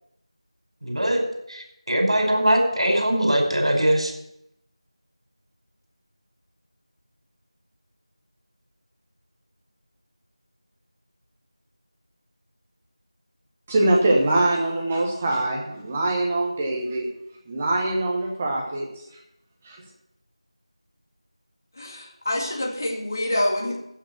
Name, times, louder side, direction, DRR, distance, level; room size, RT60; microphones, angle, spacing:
voice 1, 0.8-1.2 1.5-4.1, right 1 dB, 65° right, 2 dB, 5.0 m, -21 dB
voice 2, 13.7-17.1 17.5-18.9 19.6-19.8, right 2 dB, 10° right, -1 dB, 0.9 m, -23 dB
voice 3, 21.8-23.8, left 1 dB, 35° left, 1 dB, 2.1 m, -26 dB
15.0 x 6.4 x 7.9 m, 0.81 s
figure-of-eight pair, 175°, 3 cm